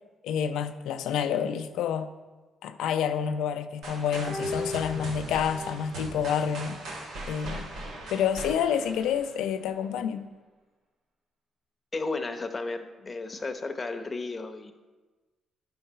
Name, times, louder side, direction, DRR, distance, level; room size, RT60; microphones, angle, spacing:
voice 1, 0.2-2.1 2.6-6.8 7.3-7.7 8.1-10.3, left 8 dB, 85° left, 0.5 m, -28 dB
sound 1, 3.8-9.7, right 2 dB, 80° right, 1.6 m, -40 dB
sound 2, 4.3-5.9 6.2-6.3, left 2 dB, 30° right, 0.9 m, -36 dB
voice 2, 11.9-14.7, left 3 dB, 25° left, 0.8 m, -33 dB
11.5 x 3.9 x 5.5 m
cardioid pair, 90°, 0 cm